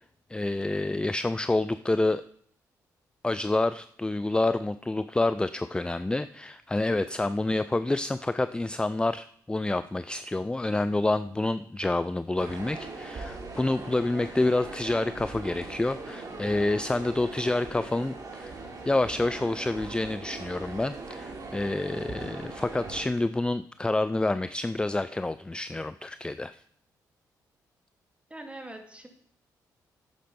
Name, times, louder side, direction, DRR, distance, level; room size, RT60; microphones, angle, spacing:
voice 1, 0.3-2.2 3.2-18.6 18.9-26.6, left 2 dB, 10° left, 13 dB, 0.4 m, -28 dB
sound 1, 12.4-23.0, right 3 dB, 50° right, 2.9 m, -40 dB
voice 2, 28.3-29.1, right 1 dB, 15° right, 4 dB, 2.5 m, -43 dB
10.5 x 8.4 x 5.2 m, 0.62 s
supercardioid pair, 65°, 8 cm